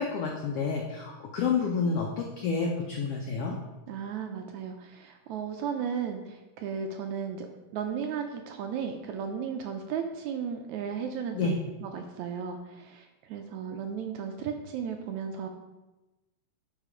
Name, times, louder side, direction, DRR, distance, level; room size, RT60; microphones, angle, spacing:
voice 1, 0.0-3.6 11.3-11.6, left 5 dB, 85° left, 1 dB, 1.3 m, -29 dB
voice 2, 3.9-7.5 7.7-15.5, right 7 dB, 75° right, 4 dB, 1.8 m, -35 dB
11.0 x 4.1 x 4.9 m, 1.1 s
omnidirectional pair, 3.8 m